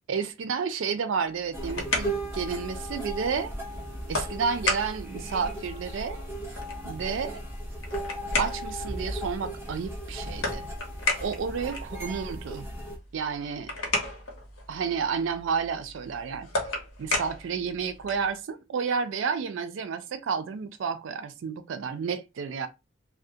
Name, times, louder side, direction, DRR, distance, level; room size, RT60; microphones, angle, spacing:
voice 1, 0.1-3.5 4.1-6.2 6.8-7.4 8.4-10.7 11.2-12.7 13.1-13.7 14.7-16.5 17.0-22.7, right 6 dB, 70° right, 0.4 m, -31 dB
sound 1, 1.3-18.3, left 2 dB, 90° left, 0.8 m, -35 dB
sound 2, 1.5-13.0, right 1 dB, 10° right, 0.7 m, -36 dB
2.3 x 2.0 x 2.6 m
head